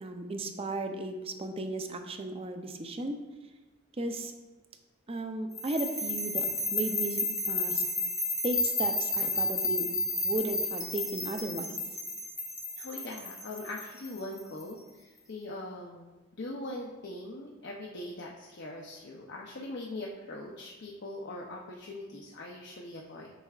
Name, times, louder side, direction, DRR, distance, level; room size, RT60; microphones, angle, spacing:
voice 1, 0.0-3.2 4.0-4.3 5.1-6.5 6.7-7.8 8.4-9.9 10.2-11.8, right 2 dB, 30° right, 6 dB, 0.6 m, -35 dB
sound 1, 5.5-14.6, left 2 dB, 15° left, 0.8 m, -32 dB
voice 2, 12.8-16.0 16.4-23.3, left 2 dB, 60° left, -2 dB, 0.6 m, -41 dB
8.1 x 5.6 x 2.4 m, 1.2 s
head